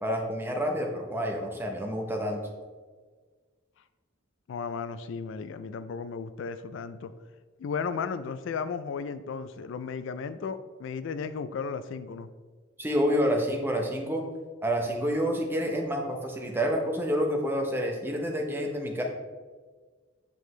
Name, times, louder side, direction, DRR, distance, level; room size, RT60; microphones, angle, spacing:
voice 1, 0.0-2.4 12.8-14.2 14.6-19.0, equal, 10° right, 1 dB, 0.7 m, -28 dB
voice 2, 4.5-7.1 7.6-12.3, left 5 dB, 70° left, 12 dB, 0.3 m, -35 dB
7.6 x 5.0 x 3.1 m, 1.4 s
head